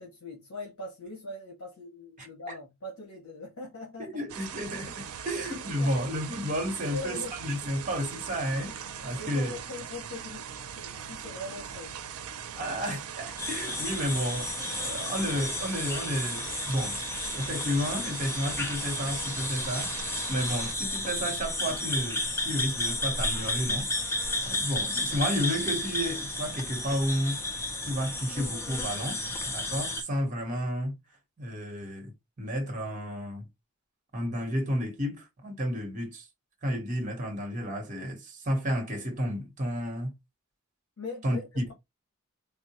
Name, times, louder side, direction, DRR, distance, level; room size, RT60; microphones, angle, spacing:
voice 1, 0.0-4.2 5.3-5.4 5.8-5.9 6.9-7.3 8.9-12.0 41.0-41.7, left 2 dB, 70° left, 1.3 m, -41 dB
voice 2, 4.0-9.5 12.5-17.0 17.3-23.9 24.2-27.4 27.8-29.2 29.5-30.9 31.4-32.1 32.4-33.5 34.1-36.3 36.6-40.1 41.2-41.6, equal, 35° right, 1.0 m, -32 dB
sound 1, 4.3-20.7, right 8 dB, 75° right, 0.5 m, -40 dB
sound 2, 13.4-30.0, left 2 dB, 10° left, 0.5 m, -32 dB
3.7 x 2.1 x 2.8 m
head